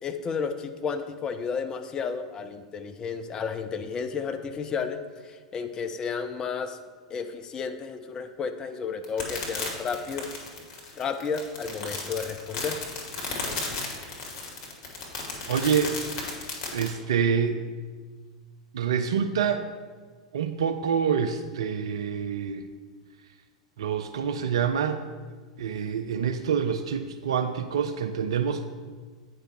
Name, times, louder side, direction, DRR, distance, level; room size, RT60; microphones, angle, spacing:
voice 1, 0.0-6.8 7.1-10.3 11.0-12.8 13.1-13.2, left 5 dB, 25° left, 8 dB, 0.5 m, -32 dB
sound 1, 9.0-16.9, left 3 dB, 40° left, 1.7 m, -34 dB
voice 2, 15.5-15.9 16.7-17.7 18.7-19.7 20.3-22.7 23.8-25.0 25.6-28.7, right 7 dB, 60° right, 8 dB, 0.4 m, -26 dB
8.9 x 4.9 x 4.4 m, 1.5 s
figure-of-eight pair, 90°, 3 cm